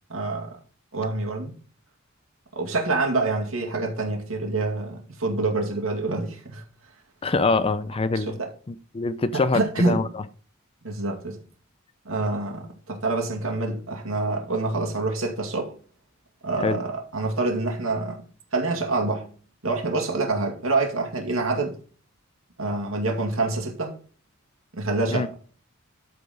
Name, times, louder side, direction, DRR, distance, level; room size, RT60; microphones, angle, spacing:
voice 1, 0.1-0.5 0.9-1.5 2.6-6.6 8.1-8.5 9.3-10.0 10.8-11.4 12.0-15.7 16.4-18.2 18.5-19.3 19.6-21.8 22.6-23.9 24.7-25.3, right 3 dB, 75° right, 2.2 m, -26 dB
voice 2, 7.2-8.4 8.7-10.1 16.6-16.8 25.1-25.3, left 3 dB, 25° left, 0.5 m, -24 dB
13.0 x 4.8 x 3.9 m
head